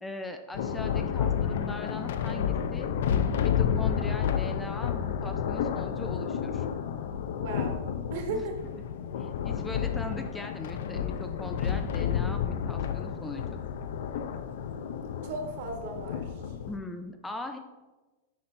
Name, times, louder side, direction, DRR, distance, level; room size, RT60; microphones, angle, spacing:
voice 1, 0.0-2.9 3.4-6.7 8.3-8.5 9.2-13.6 16.7-17.6, left 2 dB, 5° left, 6 dB, 0.3 m, -40 dB
Thunder, 0.5-16.8, left 8 dB, 70° left, 0.4 m, -30 dB
voice 2, 7.4-7.8 8.1-8.6 15.2-16.5, right 3 dB, 55° right, 4 dB, 1.2 m, -36 dB
9.8 x 4.4 x 3.2 m, 1.2 s
supercardioid pair, 165°, 0 cm